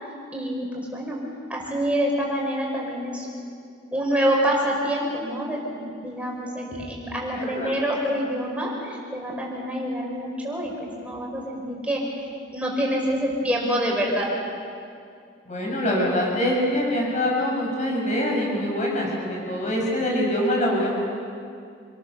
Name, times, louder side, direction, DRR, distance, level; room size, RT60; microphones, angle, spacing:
voice 1, 0.3-1.2 1.5-3.3 3.9-5.8 6.0-12.0 12.5-14.3, equal, 5° right, -2 dB, 5.1 m, -26 dB
voice 2, 7.3-7.7 15.5-21.0, left 1 dB, 35° left, -2 dB, 6.9 m, -24 dB
28.0 x 21.5 x 6.9 m, 2.4 s
head